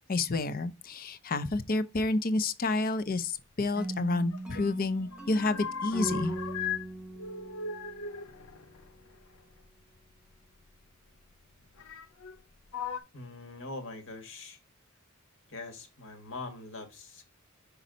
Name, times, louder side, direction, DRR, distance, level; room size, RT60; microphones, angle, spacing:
voice 1, 0.1-6.3, left 2 dB, 45° left, 0.6 m, -29 dB
opening and closing of a squeaky door, 3.8-4.7 5.0-6.9 7.2-9.7 10.7-10.8 11.8-12.4 12.7-13.0, left 6 dB, 85° left, 0.7 m, -38 dB
sound 1, 3.8-8.6, right 1 dB, 5° right, 1.1 m, -39 dB
voice 2, 13.1-14.6 15.5-17.2, left 2 dB, 60° left, 1.8 m, -42 dB
5.8 x 5.3 x 3.9 m
head